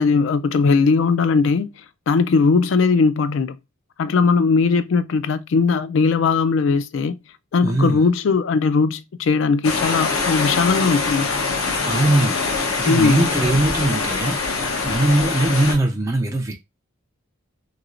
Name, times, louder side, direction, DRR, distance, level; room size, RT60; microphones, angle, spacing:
voice 1, 0.0-1.7 2.1-3.6 4.0-7.2 7.5-11.3 12.8-13.3, left 4 dB, 60° left, 0.3 m, -19 dB
voice 2, 7.6-8.1 11.8-14.4 14.8-16.5, right 1 dB, 15° right, 0.3 m, -21 dB
sound 1, 9.6-15.7, left 4 dB, 85° left, 0.7 m, -23 dB
3.1 x 2.9 x 2.4 m
head